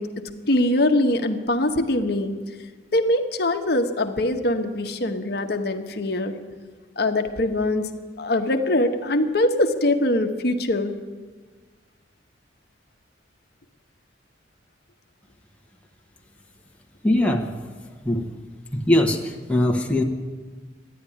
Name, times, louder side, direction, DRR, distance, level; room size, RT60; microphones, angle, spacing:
voice 1, 0.0-2.3 2.9-6.4 7.0-7.9 8.2-11.0, left 1 dB, 55° left, 5 dB, 1.0 m, -23 dB
voice 2, 17.0-17.5 18.0-18.3 18.7-20.0, left 1 dB, 5° left, 1 dB, 1.1 m, -21 dB
14.0 x 10.5 x 9.9 m, 1.4 s
head